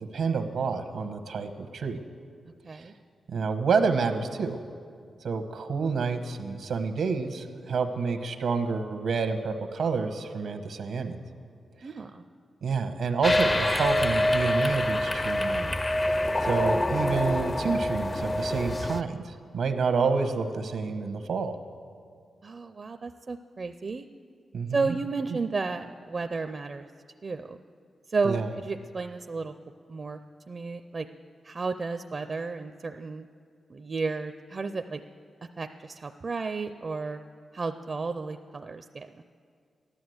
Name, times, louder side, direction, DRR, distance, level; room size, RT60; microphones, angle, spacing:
voice 1, 0.1-2.0 2.7-2.8 3.3-4.6 5.2-11.2 12.6-15.8 16.4-19.2 19.5-21.5 24.5-24.8 28.2-28.5, right 5 dB, 85° right, 7 dB, 1.1 m, -28 dB
voice 2, 11.8-12.2 22.4-24.1 24.7-26.9 27.2-27.6 28.1-29.5 29.9-30.2 30.5-31.1 31.4-33.3 33.7-35.0 35.6-37.2 37.5-39.3, right 4 dB, 45° right, 8 dB, 0.5 m, -32 dB
sound 1, 13.2-19.0, left 1 dB, 25° left, 0.5 m, -26 dB
14.0 x 11.5 x 7.9 m, 2.2 s
cardioid pair, 90°, 0 cm